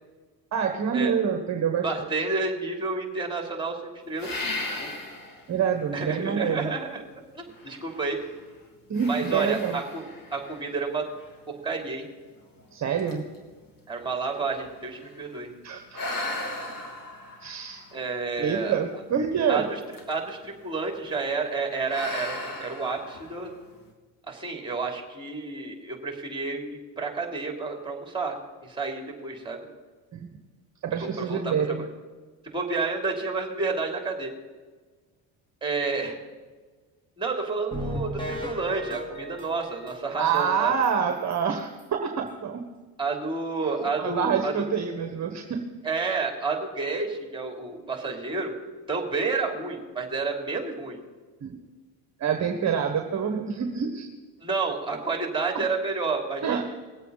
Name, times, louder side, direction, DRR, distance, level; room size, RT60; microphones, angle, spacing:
voice 1, 0.5-2.1 5.5-6.7 8.9-9.8 12.7-13.2 15.6-16.3 17.4-17.8 18.4-19.7 30.1-30.3 30.8-31.9 40.2-42.6 44.0-45.6 51.4-51.6 52.2-54.1 55.5-55.6 56.4-56.6, right 7 dB, 40° right, 5 dB, 1.3 m, -27 dB
voice 2, 1.8-4.4 4.8-4.9 5.9-7.0 7.3-8.2 9.1-10.1 10.3-11.1 11.5-12.0 13.9-15.5 17.9-18.8 19.5-19.8 20.1-23.5 24.3-29.7 31.0-31.5 32.4-34.3 35.6-36.2 37.2-40.7 43.0-44.5 45.8-48.5 48.9-51.0 54.4-56.6, right 4 dB, 10° right, 2 dB, 3.3 m, -30 dB
sound 1, 4.2-5.5 6.1-6.2 7.6-8.4 8.9-11.3 12.0-12.1 12.6-12.7 13.0-15.3 15.9-18.6 19.8-20.3 20.6-21.0 21.8-23.7, left 2 dB, 50° left, 3.0 m, -37 dB
sound 2, 37.7-40.4 40.8-40.9 41.3-41.4 41.8-41.9, equal, 10° left, 2.3 m, -35 dB
21.0 x 8.2 x 4.1 m, 1.4 s
supercardioid pair, 80°, 44 cm